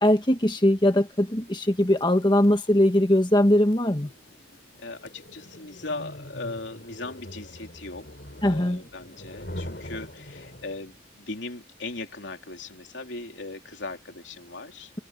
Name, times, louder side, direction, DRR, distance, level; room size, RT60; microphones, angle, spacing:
voice 1, 0.0-4.1 8.4-8.8, left 1 dB, 25° left, 1.4 m, -21 dB
sound 1, 1.6-11.0, left 1 dB, 55° left, 3.8 m, -43 dB
voice 2, 4.8-8.1 8.4-15.0, left 3 dB, 75° left, 3.2 m, -38 dB
head